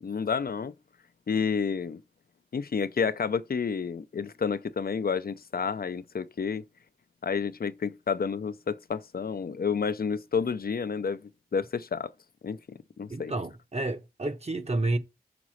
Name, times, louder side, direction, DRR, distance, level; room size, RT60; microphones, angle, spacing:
voice 1, 0.0-0.7 1.3-2.0 2.5-6.6 7.2-11.2 11.5-12.1 12.4-13.3, left 6 dB, 70° left, 0.5 m, -30 dB
voice 2, 13.1-15.0, right 2 dB, 40° right, 0.9 m, -30 dB
6.0 x 4.0 x 6.2 m
wide cardioid pair, 55°, 16 cm